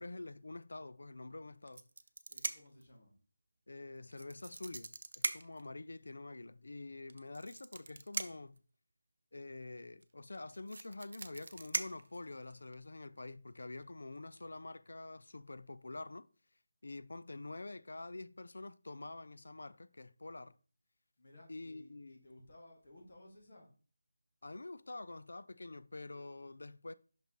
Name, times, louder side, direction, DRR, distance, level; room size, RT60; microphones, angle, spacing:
voice 1, 0.0-1.9 3.7-8.6 9.3-16.3 16.8-20.6 21.5-22.2 24.4-26.9, left 2 dB, 65° left, 0.3 m, -47 dB
sound 1, 1.7-2.8 4.1-5.7 7.1-8.6 10.0-10.1 10.3-12.7 13.6-13.8 14.2-14.4, right 3 dB, 45° right, 0.4 m, -41 dB
voice 2, 2.3-3.1 21.2-23.7, left 1 dB, 35° left, 1.6 m, -58 dB
5.9 x 5.6 x 2.9 m
figure-of-eight pair, 180°, 0 cm